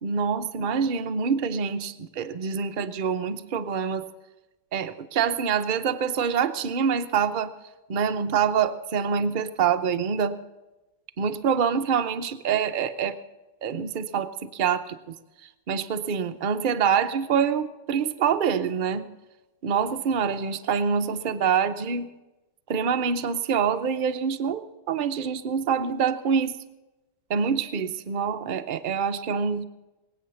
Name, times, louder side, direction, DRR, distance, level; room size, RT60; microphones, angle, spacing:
voice 1, 0.0-4.1 4.7-7.5 7.9-10.4 11.2-13.2 13.6-15.1 15.7-19.1 19.6-22.1 22.7-26.6 27.3-29.6, right 7 dB, 70° right, 8 dB, 0.4 m, -26 dB
20.5 x 8.6 x 6.9 m, 1.1 s
omnidirectional pair, 1.8 m